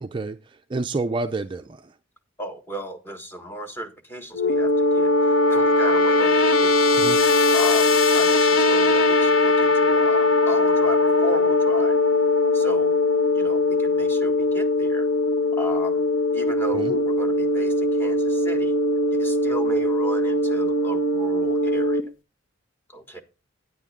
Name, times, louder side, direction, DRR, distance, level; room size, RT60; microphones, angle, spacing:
voice 1, 0.0-1.8 7.0-7.2 16.7-16.9, right 3 dB, 25° right, 0.4 m, -29 dB
voice 2, 2.4-12.0 12.5-12.9 13.3-15.1 15.6-16.0 16.3-18.8 19.1-22.1 22.9-23.2, equal, 10° left, 1.6 m, -35 dB
sound 1, 4.3-22.0, left 2 dB, 80° left, 1.0 m, -20 dB
10.0 x 9.4 x 3.6 m
head